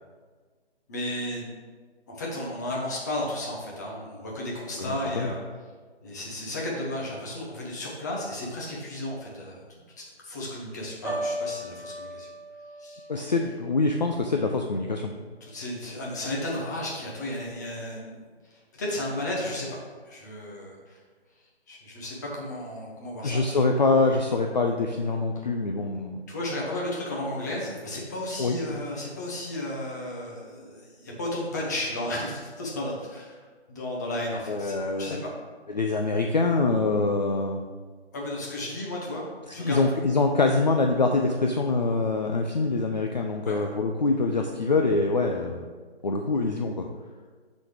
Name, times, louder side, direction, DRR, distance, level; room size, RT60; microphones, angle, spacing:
voice 1, 0.9-1.6 2.1-5.4 6.0-9.6 10.0-12.3 12.8-13.1 15.4-21.0 21.7-23.4 26.3-33.4 33.7-35.3 38.1-39.2 39.5-39.8 43.4-43.6, left 1 dB, 15° left, -3 dB, 0.9 m, -33 dB
voice 2, 4.8-5.3 13.1-15.1 23.2-26.2 28.4-28.6 34.5-35.2 35.7-37.6 39.6-45.6 46.0-46.8, left 3 dB, 45° left, 2 dB, 0.4 m, -25 dB
Piano, 11.0-15.0 15.4-15.8, equal, 10° right, 1.4 m, -37 dB
11.0 x 4.2 x 3.3 m, 1.5 s
figure-of-eight pair, 155°, 32 cm